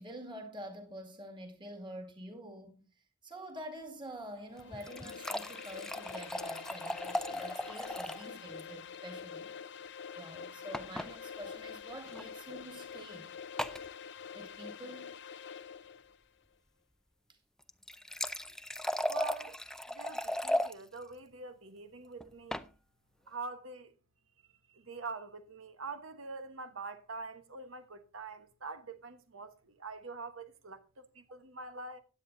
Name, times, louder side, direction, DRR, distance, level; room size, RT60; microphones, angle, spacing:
voice 1, 0.0-2.8 3.2-9.5 10.1-13.3 14.3-15.2, right 1 dB, 25° right, 2.1 m, -47 dB
sound 1, 4.5-16.2, left 6 dB, 60° left, 0.7 m, -46 dB
sound 2, 4.6-8.3 8.6-8.7 8.9-9.0 10.7-11.1 12.1-12.2 13.6-13.9 17.6-20.7 22.2-22.7, left 1 dB, 5° left, 0.4 m, -36 dB
voice 2, 19.1-19.6 19.9-22.6 23.3-23.9 24.7-32.0, right 4 dB, 80° right, 1.2 m, -45 dB
15.5 x 9.6 x 2.6 m
head